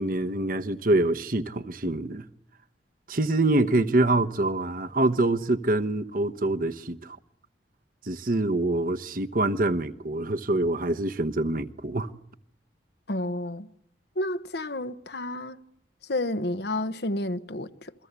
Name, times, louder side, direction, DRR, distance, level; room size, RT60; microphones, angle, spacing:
voice 1, 0.0-2.3 3.1-7.2 8.0-12.1, right 2 dB, 50° right, 1.1 m, -25 dB
voice 2, 13.1-13.7 14.2-15.6 16.1-17.9, left 1 dB, 65° left, 1.2 m, -30 dB
28.5 x 23.0 x 8.3 m
head